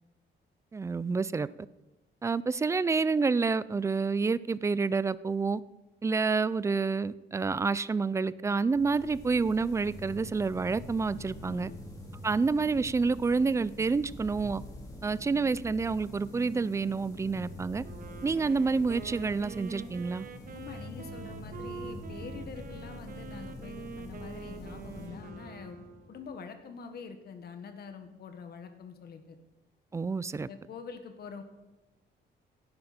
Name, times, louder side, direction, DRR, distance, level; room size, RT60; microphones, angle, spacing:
voice 1, 0.7-1.5 2.2-5.6 6.0-11.7 12.2-14.6 15.0-17.8 18.2-20.3 29.9-30.5, right 4 dB, 15° right, 18 dB, 0.3 m, -28 dB
sound 1, 8.7-26.2, left 1 dB, 20° left, 2.7 m, -45 dB
voice 2, 11.4-11.8 20.5-25.8 26.1-29.4 30.5-31.4, left 5 dB, 60° left, 7 dB, 1.5 m, -45 dB
Wind instrument woodwind instrument, 17.8-26.5, right 5 dB, 50° right, 1.2 m, -46 dB
16.5 x 11.0 x 4.3 m, 1.0 s
cardioid pair, 150°, 19 cm